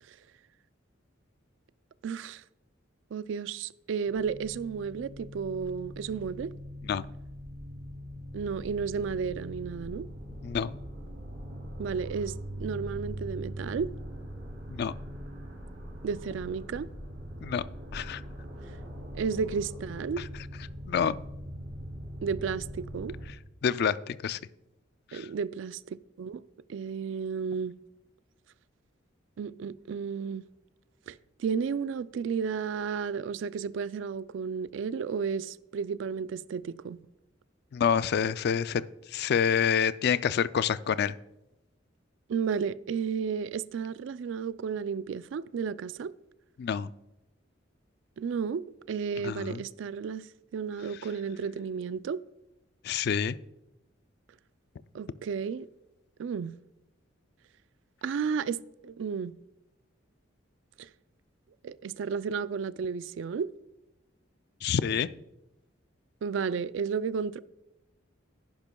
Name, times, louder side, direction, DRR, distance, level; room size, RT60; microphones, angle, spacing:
voice 1, 2.0-2.4 3.1-6.5 8.3-10.1 11.8-13.9 16.0-16.9 19.1-20.3 22.2-23.2 25.1-26.4 26.7-27.8 29.4-30.5 31.1-37.0 42.3-46.1 48.2-50.3 50.5-52.2 54.9-55.7 56.2-56.5 58.0-59.3 60.8-60.9 61.6-63.5 66.2-67.4, right 6 dB, 70° right, 0.3 m, -33 dB
sound 1, 4.1-23.2, equal, 50° right, 3.6 m, -41 dB
voice 2, 10.4-10.8 14.7-14.9 17.4-17.6 17.9-18.2 20.9-21.2 23.6-24.4 25.1-25.3 37.7-38.8 39.1-41.2 46.6-46.9 49.2-49.6 52.8-53.4 64.6-65.1, left 7 dB, 55° left, 0.3 m, -27 dB
10.5 x 10.5 x 2.2 m
head